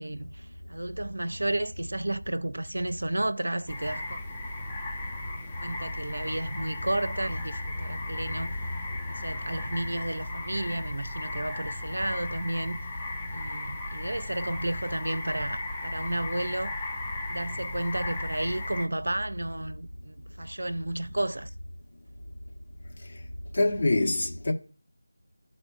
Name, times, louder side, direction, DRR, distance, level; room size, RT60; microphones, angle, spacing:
voice 1, 0.0-4.2 5.6-8.6 9.1-12.8 13.3-16.9 17.3-21.5, right 1 dB, 75° right, 0.6 m, -32 dB
sound 1, 3.7-18.9, left 2 dB, 15° left, 0.7 m, -36 dB
voice 2, 23.5-24.5, left 2 dB, 50° left, 1.2 m, -24 dB
12.5 x 4.3 x 2.6 m
figure-of-eight pair, 165°, 0 cm